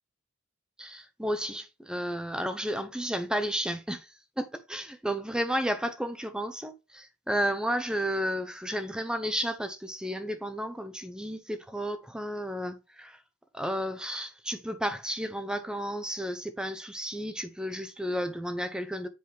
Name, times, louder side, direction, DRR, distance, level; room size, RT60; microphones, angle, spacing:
voice 1, 0.8-13.2 13.5-19.1, equal, 5° right, 0.6 m, -32 dB
7.8 x 5.0 x 3.3 m
head